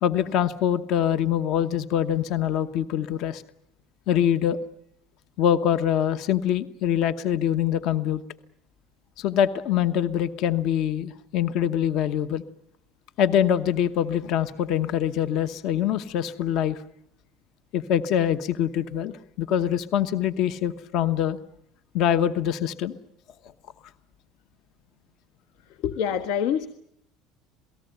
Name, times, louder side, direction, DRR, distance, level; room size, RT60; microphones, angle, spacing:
voice 1, 0.0-3.4 4.1-4.6 5.4-8.2 9.2-12.4 13.2-16.8 17.7-21.4 21.9-23.0 25.8-25.9, left 10 dB, 50° left, 11 dB, 1.0 m, -24 dB
voice 2, 26.0-26.7, left 8 dB, 70° left, 9 dB, 1.4 m, -25 dB
28.0 x 18.5 x 9.0 m, 0.76 s
cardioid pair, 170°, 0 cm